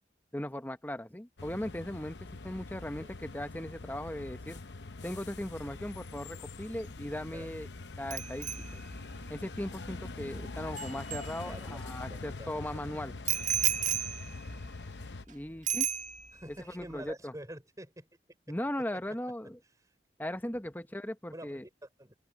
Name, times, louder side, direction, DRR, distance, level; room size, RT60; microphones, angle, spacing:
voice 1, 0.3-4.6 5.0-7.7 8.0-8.8 9.3-13.1 15.3-15.9 16.5-17.3 18.5-19.6 20.2-21.6, left 1 dB, 10° left, 1.0 m, -38 dB
sound 1, 1.4-15.3, left 3 dB, 75° left, 0.9 m, -43 dB
Bicycle bell, 8.1-11.9 13.3-15.3 15.7-16.5 16.8-17.1, right 10 dB, 45° right, 1.6 m, -35 dB
voice 2, 11.4-11.8 12.1-12.8 15.5-15.6 16.3-18.1 18.5-18.6 21.3-22.2, right 1 dB, 20° right, 5.5 m, -47 dB
open air
head